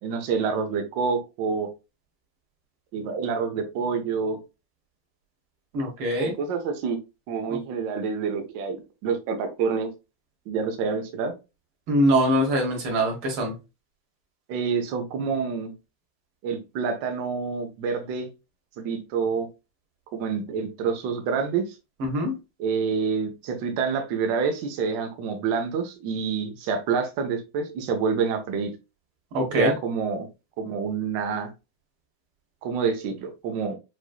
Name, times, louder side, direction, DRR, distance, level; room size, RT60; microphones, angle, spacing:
voice 1, 0.0-1.7 2.9-4.4 6.2-7.0 7.3-8.8 9.0-9.9 10.5-11.3 14.5-15.7 16.4-18.3 18.8-19.5 20.1-21.6 22.6-28.7 29.5-30.3 30.6-31.5 32.6-33.8, right 5 dB, 70° right, 5 dB, 1.3 m, -27 dB
voice 2, 5.7-6.4 7.5-7.6 11.9-13.5 22.0-22.3 29.3-29.7, equal, 90° right, 1 dB, 2.2 m, -23 dB
6.0 x 2.5 x 2.3 m, 0.27 s
omnidirectional pair, 2.3 m